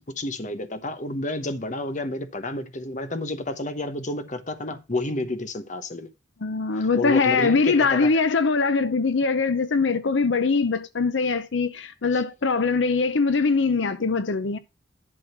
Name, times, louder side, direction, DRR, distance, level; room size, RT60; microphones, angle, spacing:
voice 1, 0.0-6.1 6.7-8.1 12.1-12.2 14.4-14.6, left 2 dB, 40° left, 1.0 m, -30 dB
voice 2, 6.4-14.6, left 4 dB, 75° left, 0.7 m, -22 dB
11.0 x 3.7 x 5.9 m
head